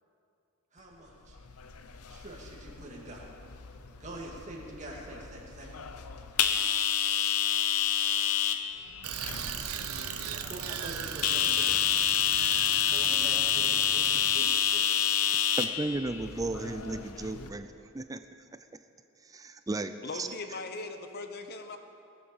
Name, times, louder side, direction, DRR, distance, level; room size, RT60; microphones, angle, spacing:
voice 1, 0.7-1.4 2.1-3.3 4.0-5.7 10.3-11.7 12.9-14.9, right 1 dB, 30° right, -2 dB, 2.2 m, -44 dB
sound 1, 1.4-17.5, left 9 dB, 85° left, 0.8 m, -29 dB
Bicycle, 9.0-14.5, right 8 dB, 80° right, 0.8 m, -38 dB
voice 2, 15.6-18.2 19.2-20.3, right 2 dB, 15° right, 10 dB, 0.4 m, -35 dB
voice 3, 20.0-21.8, left 3 dB, 45° left, 7 dB, 0.9 m, -39 dB
17.5 x 7.8 x 7.1 m, 2.6 s
head